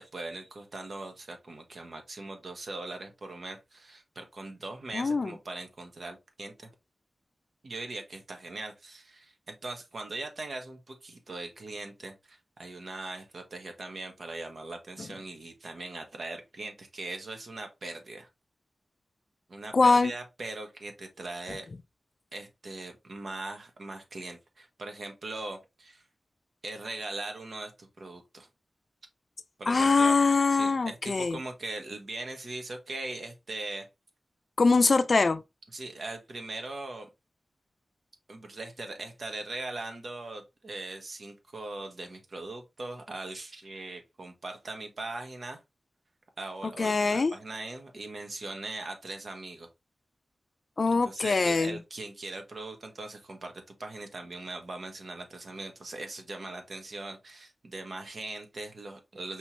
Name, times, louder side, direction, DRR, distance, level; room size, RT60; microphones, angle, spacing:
voice 1, 0.1-6.7 7.6-18.3 19.5-21.7 22.3-26.0 26.6-28.5 29.6-30.2 30.5-33.9 35.7-37.1 38.3-45.6 46.4-49.7 50.9-53.5 53.8-59.4, right 2 dB, 65° right, 1.2 m, -40 dB
voice 2, 4.9-5.3 19.7-20.1 29.7-31.4 34.6-35.4 46.8-47.3 50.8-51.8, left 4 dB, 55° left, 0.4 m, -23 dB
5.4 x 3.0 x 3.0 m
wide cardioid pair, 95°, 0 cm